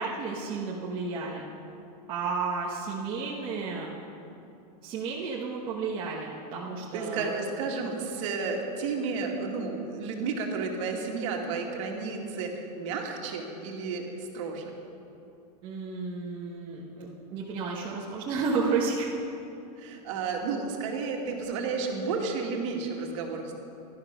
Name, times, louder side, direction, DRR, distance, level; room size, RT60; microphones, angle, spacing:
voice 1, 0.0-1.4 2.1-3.9 4.8-7.3 15.6-19.1, right 4 dB, 25° right, -4 dB, 1.2 m, -32 dB
voice 2, 6.9-14.7 19.8-23.5, right 4 dB, 45° right, 1 dB, 2.2 m, -32 dB
16.0 x 12.5 x 6.1 m, 2.7 s
supercardioid pair, 175°, 21 cm